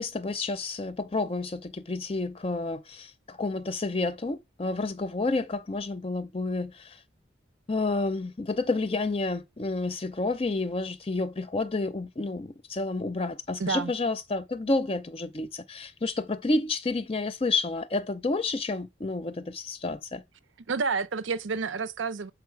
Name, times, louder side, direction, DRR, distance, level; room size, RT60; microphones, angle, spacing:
voice 1, 0.0-7.0 7.7-20.2, left 3 dB, 30° left, 0.5 m, -30 dB
voice 2, 13.6-13.9 20.7-22.3, right 5 dB, 90° right, 0.6 m, -29 dB
7.0 x 4.7 x 4.6 m
head